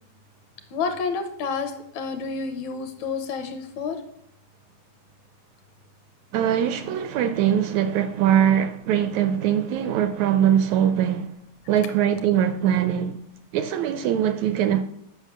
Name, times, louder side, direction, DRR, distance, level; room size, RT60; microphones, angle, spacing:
voice 1, 0.7-4.0, left 5 dB, 75° left, 1.9 m, -29 dB
voice 2, 6.3-11.3 11.7-13.2 13.5-14.8, right 9 dB, 80° right, 1.6 m, -22 dB
8.2 x 5.7 x 6.7 m
omnidirectional pair, 3.7 m